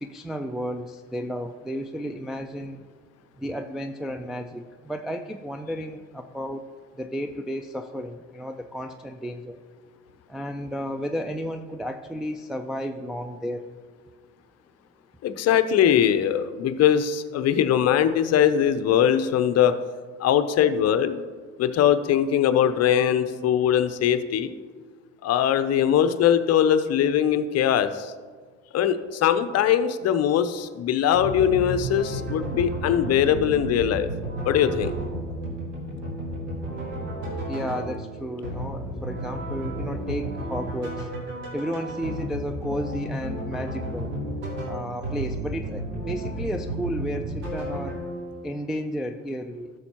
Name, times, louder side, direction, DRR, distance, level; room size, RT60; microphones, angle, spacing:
voice 1, 0.0-2.9 3.4-9.6 10.3-13.6 37.5-41.1 41.5-44.1 44.6-48.0 48.4-49.7, equal, ahead, 4 dB, 0.3 m, -33 dB
voice 2, 15.2-19.7 20.2-21.3 21.6-24.5 25.2-28.1 28.7-34.1 34.5-34.9, left 9 dB, 45° left, 11 dB, 0.7 m, -21 dB
sound 1, 31.1-48.5, right 1 dB, 80° right, 2.6 m, -32 dB
13.0 x 6.4 x 2.9 m, 1.5 s
hypercardioid pair, 70°, 36 cm